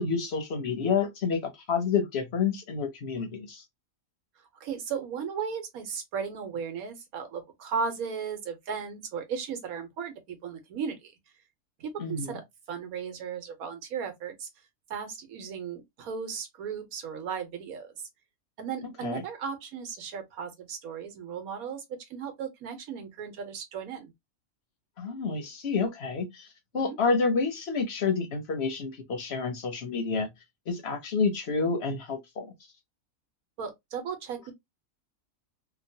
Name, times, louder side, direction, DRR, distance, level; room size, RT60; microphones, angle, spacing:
voice 1, 0.0-3.6 12.0-12.4 18.8-19.2 25.0-26.5 26.7-30.3 30.7-32.5, left 5 dB, 55° left, 0.8 m, -29 dB
voice 2, 4.6-11.1 11.8-12.4 12.7-14.5 14.9-17.9 18.6-21.8 22.1-24.1 26.7-27.0 33.6-34.5, right 6 dB, 90° right, 1.3 m, -36 dB
2.9 x 2.2 x 2.7 m
omnidirectional pair, 1.5 m